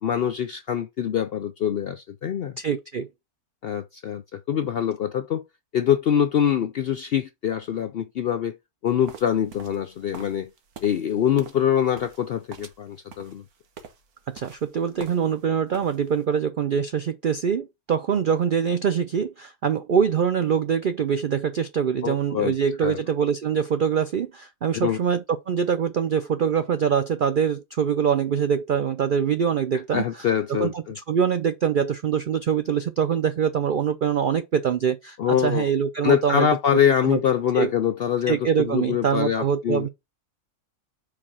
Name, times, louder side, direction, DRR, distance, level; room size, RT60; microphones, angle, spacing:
voice 1, 0.0-2.5 3.6-5.4 5.7-8.6 8.8-10.5 10.8-13.4 22.0-22.5 22.8-23.0 24.7-25.0 29.9-31.0 35.2-35.7 36.0-39.9, left 9 dB, 70° left, 0.5 m, -24 dB
voice 2, 2.6-3.1 14.3-30.1 30.5-37.2 37.5-37.7 38.3-39.9, right 7 dB, 70° right, 0.4 m, -24 dB
sound 1, 9.1-15.5 15.7-16.2, right 6 dB, 85° right, 1.6 m, -45 dB
4.9 x 4.1 x 5.5 m
omnidirectional pair, 1.5 m